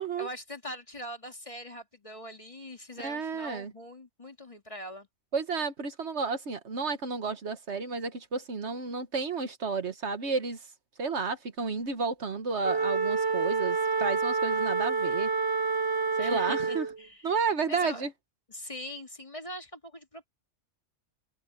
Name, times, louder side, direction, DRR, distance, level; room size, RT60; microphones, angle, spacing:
voice 1, 0.2-5.1 16.2-17.3 17.7-18.0 18.5-20.3, left 1 dB, 25° left, 2.3 m, -42 dB
voice 2, 3.0-3.7 5.3-10.7 11.0-15.3 16.2-16.9 17.2-18.1, right 4 dB, 65° right, 1.6 m, -32 dB
Wind instrument woodwind instrument, 12.6-17.0, right 4 dB, 20° right, 1.3 m, -28 dB
omnidirectional pair, 1.3 m